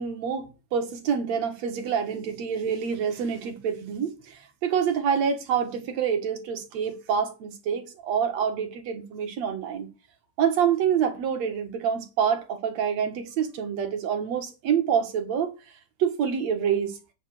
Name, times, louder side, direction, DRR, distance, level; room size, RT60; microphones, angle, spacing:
voice 1, 0.0-9.9 10.4-15.5 16.0-17.0, right 7 dB, 65° right, 2.5 m, -27 dB
9.2 x 5.6 x 6.1 m
omnidirectional pair, 3.5 m